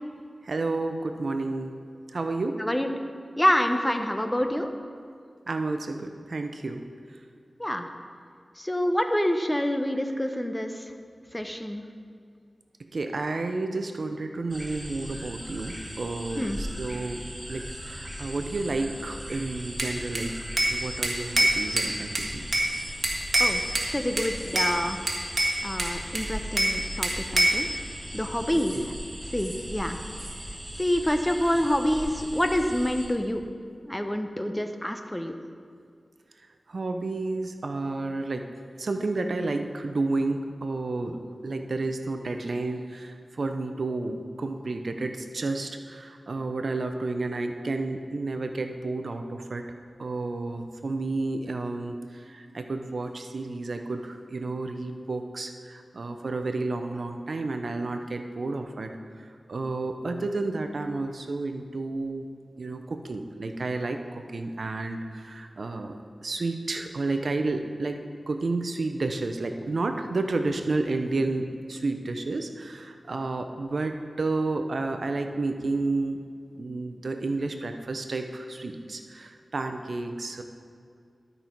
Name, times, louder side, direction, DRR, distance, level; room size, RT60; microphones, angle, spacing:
voice 1, 0.4-1.7 2.1-2.7 5.5-6.9 12.9-20.3 20.7-22.5 28.7-28.9 36.7-38.5 38.8-49.6 50.0-58.9 59.2-62.3 62.6-76.2 76.6-80.4, right 3 dB, 70° right, 6 dB, 0.7 m, -31 dB
voice 2, 3.4-4.7 7.6-7.9 8.6-10.9 11.3-11.8 16.4-16.6 23.4-23.6 23.9-25.0 25.6-27.7 28.1-28.8 29.3-30.0 30.8-33.4 33.8-35.3, equal, 15° left, 6 dB, 0.8 m, -27 dB
sound 1, 14.5-33.1, equal, 10° right, 1.8 m, -39 dB
Bell / Glass, 19.8-20.8 21.0-22.7 23.0-23.9 24.2-24.7 25.1-26.8 27.0-27.6, right 1 dB, 50° right, 1.5 m, -25 dB
12.5 x 5.5 x 4.5 m, 2.2 s
cardioid pair, 50°, 0 cm